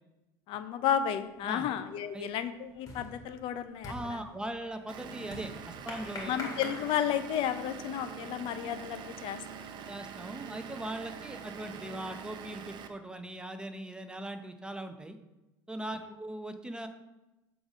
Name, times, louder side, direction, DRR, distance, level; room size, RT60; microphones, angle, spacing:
voice 1, 0.5-4.2 6.3-9.4, left 9 dB, 60° left, 10 dB, 0.6 m, -32 dB
sound 1, 1.2-1.6 1.9-7.7, left 2 dB, 35° left, 2.2 m, -45 dB
voice 2, 3.9-6.3 9.9-15.2 15.7-16.9, right 1 dB, 10° right, 8 dB, 0.6 m, -40 dB
Vehicle / Engine, 4.9-12.9, right 7 dB, 45° right, 0.7 m, -44 dB
7.7 x 4.0 x 5.0 m, 1.0 s
supercardioid pair, 105°, 10 cm